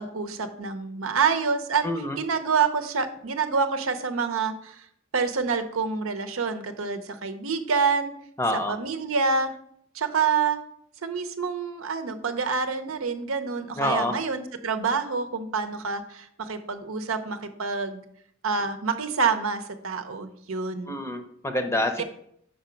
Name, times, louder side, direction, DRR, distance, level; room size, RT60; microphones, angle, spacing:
voice 1, 0.0-4.8 5.1-8.1 8.7-9.5 9.9-10.6 11.0-18.0 18.4-21.0 22.0-22.1, right 5 dB, 85° right, 8 dB, 0.7 m, -27 dB
voice 2, 1.8-2.2 8.4-8.7 13.8-14.1 20.9-22.0, left 1 dB, 15° left, 6 dB, 0.7 m, -27 dB
5.2 x 5.0 x 5.8 m, 0.69 s
head